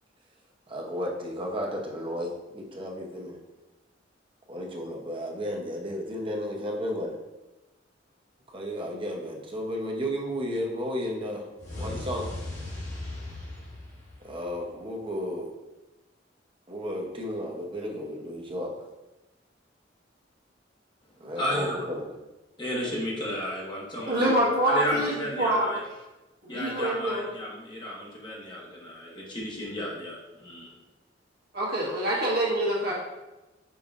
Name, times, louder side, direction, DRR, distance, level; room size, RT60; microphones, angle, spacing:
voice 1, 0.7-3.4 4.5-7.1 8.5-11.5 11.7-12.3 14.2-15.5 16.7-18.7 21.2-22.1, equal, 30° right, 0 dB, 0.7 m, -33 dB
sound 1, 11.6-14.7, left 2 dB, 45° left, 1.5 m, -38 dB
voice 2, 21.3-21.7 22.6-25.8 26.5-30.7, left 1 dB, 25° left, -4 dB, 1.1 m, -33 dB
voice 3, 24.1-25.7 26.4-27.2 31.5-32.9, right 1 dB, 60° right, -4 dB, 1.3 m, -26 dB
5.3 x 3.9 x 2.4 m, 1.0 s
head